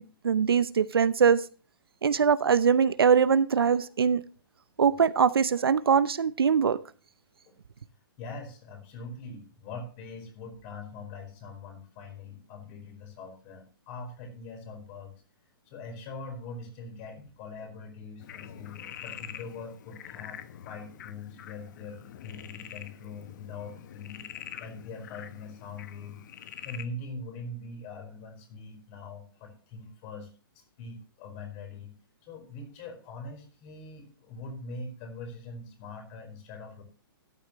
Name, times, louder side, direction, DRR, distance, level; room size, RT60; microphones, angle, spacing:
voice 1, 0.0-1.4 2.0-4.2 4.8-6.8, right 6 dB, 85° right, 15 dB, 0.8 m, -22 dB
voice 2, 8.2-15.1 15.7-20.4 20.6-24.2 24.6-26.2 26.6-30.3 30.5-31.9 32.2-36.8, left 3 dB, 35° left, 4 dB, 4.7 m, -42 dB
Frog, 18.2-26.9, left 10 dB, 55° left, 1.1 m, -45 dB
13.0 x 11.0 x 3.1 m, 0.36 s
hypercardioid pair, 140°, 12 cm